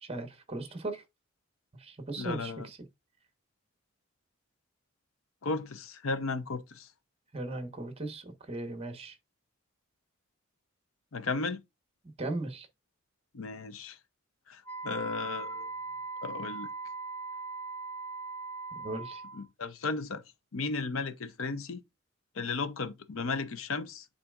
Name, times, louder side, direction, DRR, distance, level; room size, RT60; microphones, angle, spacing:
voice 1, 0.0-1.0 1.8-2.8 7.3-9.2 12.2-12.7 18.8-19.2, right 2 dB, 30° right, 1.1 m, -37 dB
voice 2, 2.2-2.7 5.4-6.9 11.1-11.6 13.3-14.0 14.5-15.7 16.2-16.7 19.3-20.2 20.5-21.8 22.3-24.1, left 4 dB, 80° left, 0.7 m, -35 dB
Wind instrument woodwind instrument, 14.6-19.4, right 3 dB, 5° left, 1.1 m, -40 dB
9.7 x 4.1 x 2.4 m
head